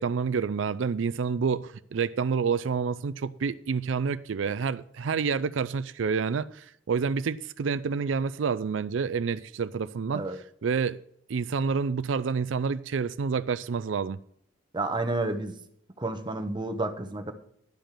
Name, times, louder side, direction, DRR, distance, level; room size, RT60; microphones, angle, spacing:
voice 1, 0.0-10.2 10.6-11.0 11.3-14.2, right 5 dB, 80° right, 0.4 m, -28 dB
voice 2, 14.7-15.5 16.0-17.3, right 2 dB, 25° right, 1.1 m, -30 dB
12.0 x 5.2 x 7.4 m
head